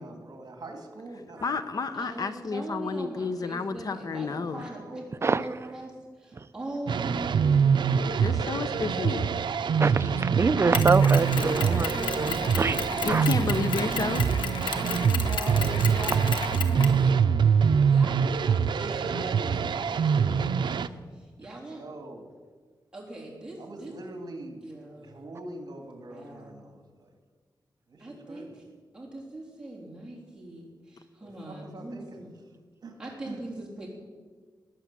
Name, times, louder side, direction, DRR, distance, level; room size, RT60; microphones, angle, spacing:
voice 1, 0.0-1.6 3.9-5.3 11.6-13.3 15.3-15.8 18.7-19.7 21.7-22.3 23.6-27.1 27.9-28.6 31.2-32.2 32.8-33.4, right 2 dB, 55° right, 4 dB, 2.5 m, -43 dB
voice 2, 1.4-4.6 8.2-9.3 13.0-14.4, left 4 dB, 50° left, 11 dB, 0.8 m, -31 dB
voice 3, 1.9-9.2 11.5-12.3 14.6-17.0 17.8-20.8 21.1-21.8 22.9-23.9 24.6-25.2 26.1-26.5 28.0-28.6 28.9-32.3 33.0-33.9, right 1 dB, 10° right, -4 dB, 3.5 m, -41 dB
voice 4, 5.2-5.6 6.4-6.5 9.8-11.9 12.2-12.8 13.1-13.3, right 4 dB, 35° right, 12 dB, 0.5 m, -25 dB
sound 1, 6.9-20.9, right 6 dB, 80° right, 0.5 m, -24 dB
Mechanisms, 10.7-17.0, left 5 dB, 90° left, 1.2 m, -34 dB
20.0 x 8.4 x 7.5 m, 1.5 s
wide cardioid pair, 160°, 8 cm